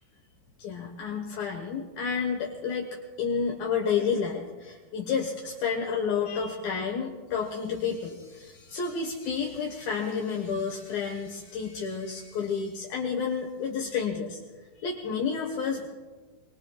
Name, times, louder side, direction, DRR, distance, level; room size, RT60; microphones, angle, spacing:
voice 1, 0.6-2.9 3.2-14.4 14.8-15.9, left 6 dB, 65° left, 0 dB, 3.0 m, -30 dB
27.5 x 22.0 x 2.4 m, 1.3 s
omnidirectional pair, 4.7 m